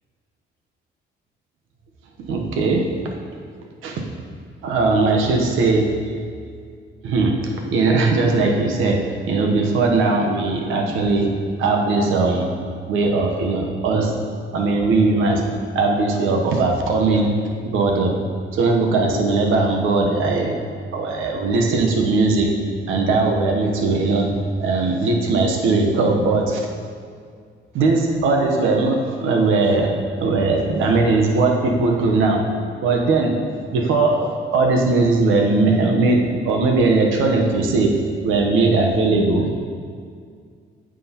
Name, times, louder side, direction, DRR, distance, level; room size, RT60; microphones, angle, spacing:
voice 1, 2.2-2.9 3.8-4.0 4.6-6.0 7.0-11.3 11.6-12.5 12.9-14.1 14.5-15.4 15.7-17.3 17.7-18.2 18.5-20.6 20.9-22.5 22.9-24.3 24.6-26.7 27.7-29.9 30.2-32.5 32.8-33.4 33.7-38.0 38.2-39.5, right 3 dB, 85° right, 1 dB, 1.0 m, -19 dB
9.5 x 6.2 x 3.0 m, 2.1 s
cardioid pair, 90°, 20 cm